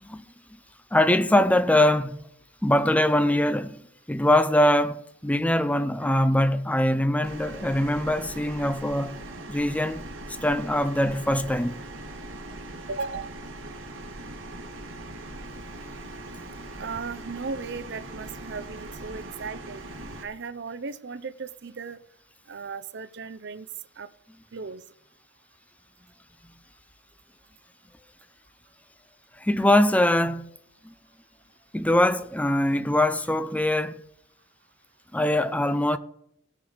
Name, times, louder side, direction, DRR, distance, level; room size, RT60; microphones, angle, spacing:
voice 1, 0.9-2.2 2.6-3.8 4.1-9.2 9.5-10.1 10.4-11.8 29.4-30.5 31.7-34.0 35.1-36.0, left 1 dB, 5° left, 0.5 m, -22 dB
sound 1, 7.2-20.2, right 2 dB, 85° right, 1.5 m, -40 dB
voice 2, 12.9-13.4 16.8-19.8 20.2-22.0 22.5-23.7 24.0-24.1 24.5-24.8, right 4 dB, 60° right, 0.6 m, -36 dB
17.0 x 6.6 x 5.1 m
head